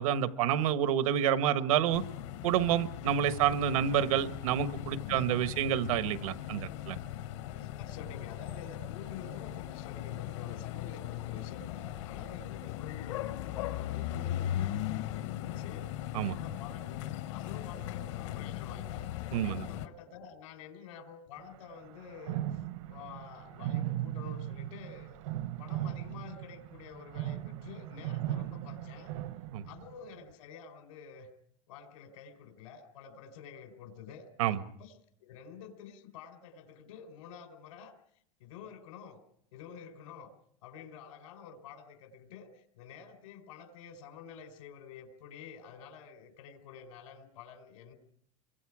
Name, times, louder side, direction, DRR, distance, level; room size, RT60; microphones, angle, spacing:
voice 1, 0.0-2.0 2.4-7.0 16.1-16.4 19.3-19.6 29.5-29.6 34.4-34.6, right 10 dB, 90° right, 11 dB, 1.4 m, -28 dB
sound 1, 1.9-19.9, left 12 dB, 60° left, 1.0 m, -38 dB
voice 2, 5.0-5.5 7.4-15.9 16.3-19.1 19.4-25.2 25.6-29.1 29.7-31.3 31.7-37.9 38.4-39.2 39.5-40.3 40.6-47.9, left 7 dB, 85° left, 7 dB, 4.4 m, -49 dB
sound 2, 21.4-21.5 21.8-30.1, right 13 dB, 65° right, 0.8 m, -38 dB
29.5 x 24.0 x 4.9 m, 0.65 s
supercardioid pair, 175°, 17 cm